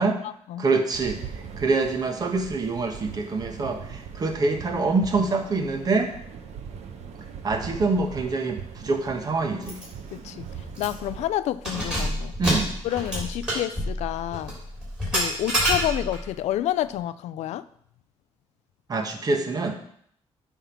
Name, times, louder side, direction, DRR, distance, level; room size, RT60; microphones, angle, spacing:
voice 1, 0.0-0.7 10.1-10.5 10.8-12.3 12.8-14.5 15.1-17.6, left 13 dB, 90° left, 15 dB, 0.4 m, -29 dB
voice 2, 0.6-6.1 7.4-9.8 12.4-12.7 18.9-19.8, right 3 dB, 35° right, 5 dB, 1.1 m, -25 dB
sound 1, 0.9-11.3, right 7 dB, 75° right, 1.0 m, -40 dB
Keys jangling, 9.7-9.9 10.2-10.3 10.7-11.1 11.5-16.3, equal, 5° right, 3.6 m, -28 dB
9.3 x 3.7 x 5.9 m, 0.65 s
cardioid pair, 140°, 11 cm